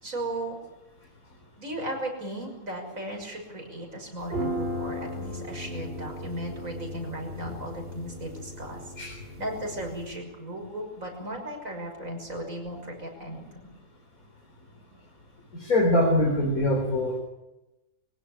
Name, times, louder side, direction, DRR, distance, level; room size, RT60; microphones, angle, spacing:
voice 1, 0.0-0.6 1.6-8.9 9.4-13.7, right 1 dB, 70° right, 3 dB, 6.4 m, -36 dB
sound 1, 4.2-10.1, equal, 45° right, 4.2 m, -36 dB
voice 2, 15.5-17.2, left 1 dB, 85° left, 2 dB, 4.1 m, -23 dB
24.0 x 16.5 x 10.0 m, 0.98 s
omnidirectional pair, 1.5 m